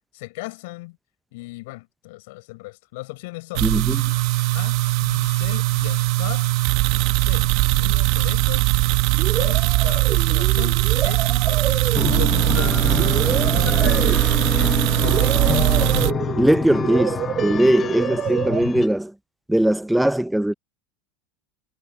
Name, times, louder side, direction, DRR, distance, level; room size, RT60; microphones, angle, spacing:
voice 1, 0.1-1.0 1.3-3.7 4.5-6.5 7.1-8.7 9.4-14.0 14.3-15.6 17.6-18.2, left 22 dB, 75° left, 4.3 m, -37 dB
voice 2, 3.6-4.0 16.4-19.1 19.5-20.5, right 1 dB, 5° right, 0.5 m, -20 dB
sound 1, 3.6-16.1, right 21 dB, 60° right, 1.1 m, -20 dB
sound 2, 9.1-18.6, right 10 dB, 40° right, 2.0 m, -29 dB
sound 3, 11.9-18.9, left 7 dB, 30° left, 1.2 m, -27 dB
supercardioid pair, 120°, 0 cm